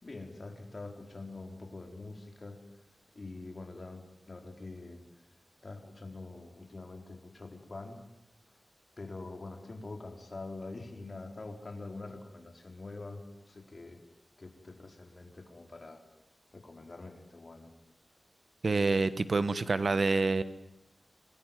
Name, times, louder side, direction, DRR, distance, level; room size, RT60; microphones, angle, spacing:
voice 1, 0.0-2.6 3.1-5.0 5.6-8.0 9.0-14.0 14.4-16.0 16.5-17.7, left 3 dB, 45° left, 4 dB, 4.5 m, -45 dB
voice 2, 18.6-20.4, right 3 dB, 55° right, 14 dB, 1.3 m, -27 dB
26.0 x 21.0 x 9.3 m, 0.84 s
wide cardioid pair, 85°, 0 cm